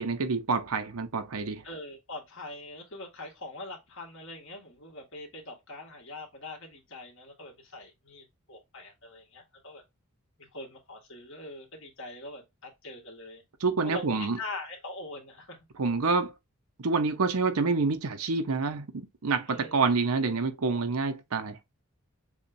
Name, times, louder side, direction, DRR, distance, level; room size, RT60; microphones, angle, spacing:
voice 1, 0.0-1.6 13.6-14.4 15.8-16.3 16.8-21.6, right 4 dB, 80° right, 0.7 m, -27 dB
voice 2, 1.6-9.8 10.4-13.4 13.8-15.6 19.5-19.8, left 2 dB, 60° left, 1.9 m, -43 dB
6.9 x 2.3 x 2.6 m
head